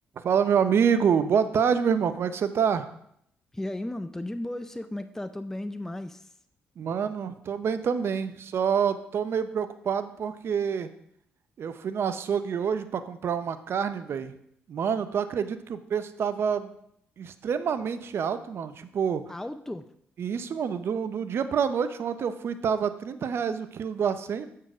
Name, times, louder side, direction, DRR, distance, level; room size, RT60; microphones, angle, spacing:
voice 1, 0.2-2.9 6.8-10.9 11.6-14.3 14.7-16.8 17.2-19.2 20.2-24.5, right 7 dB, 60° right, 12 dB, 0.7 m, -27 dB
voice 2, 3.5-6.3 19.3-19.9, left 1 dB, 10° left, 10 dB, 0.5 m, -35 dB
7.8 x 4.6 x 6.0 m, 0.72 s
supercardioid pair, 60°, 5 cm